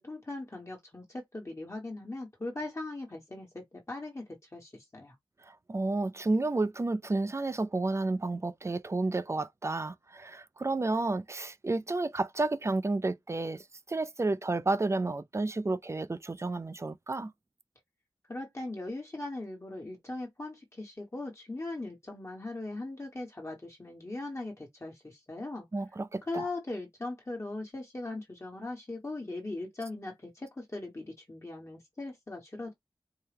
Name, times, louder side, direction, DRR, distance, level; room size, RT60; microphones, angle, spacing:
voice 1, 0.0-4.2 4.5-5.1 18.3-25.7 26.3-32.7, left 2 dB, 30° left, 1.3 m, -39 dB
voice 2, 5.4-17.3 25.7-26.5, right 2 dB, 30° right, 0.4 m, -31 dB
4.5 x 2.2 x 3.4 m
wide cardioid pair, 80°, 9 cm